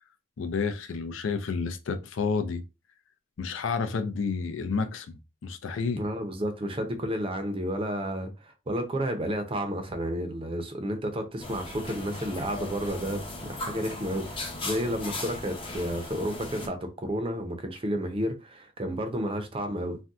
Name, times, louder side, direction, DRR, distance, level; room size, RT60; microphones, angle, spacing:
voice 1, 0.4-2.6 3.4-6.0, left 5 dB, 75° left, 0.4 m, -30 dB
voice 2, 6.0-20.0, equal, 30° right, 0.5 m, -31 dB
sound 1, 11.4-16.7, left 2 dB, 25° left, 0.6 m, -37 dB
2.6 x 2.2 x 3.5 m
head